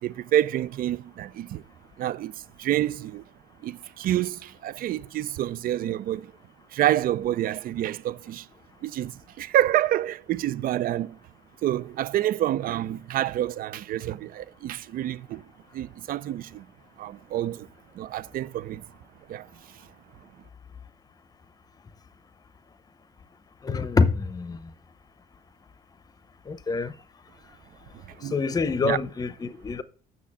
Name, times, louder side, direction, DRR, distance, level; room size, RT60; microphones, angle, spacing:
voice 1, 0.0-1.6 2.0-3.3 3.6-6.3 6.7-8.5 8.8-11.2 11.6-15.5 15.7-16.7 17.0-17.7 17.9-18.8 19.3-19.8 28.1-28.4 28.8-29.0, right 13 dB, 60° right, 0.5 m, -28 dB
voice 2, 23.6-24.7 26.5-26.9 28.3-29.8, left 4 dB, 20° left, 0.7 m, -26 dB
7.2 x 6.4 x 7.3 m
cardioid pair, 110°, 17 cm